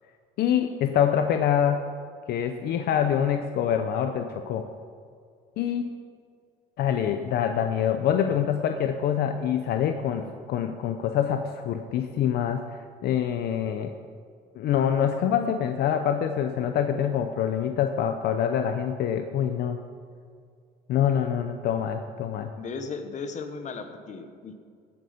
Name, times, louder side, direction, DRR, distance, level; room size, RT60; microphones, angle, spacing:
voice 1, 0.4-1.9 2.3-4.7 5.6-5.9 6.8-13.9 14.5-19.8 20.9-22.5, left 9 dB, 70° left, 7 dB, 0.7 m, -25 dB
voice 2, 22.5-24.5, left 4 dB, 45° left, 8 dB, 1.2 m, -36 dB
15.5 x 7.9 x 5.2 m, 2.2 s
cardioid pair, 110°, 17 cm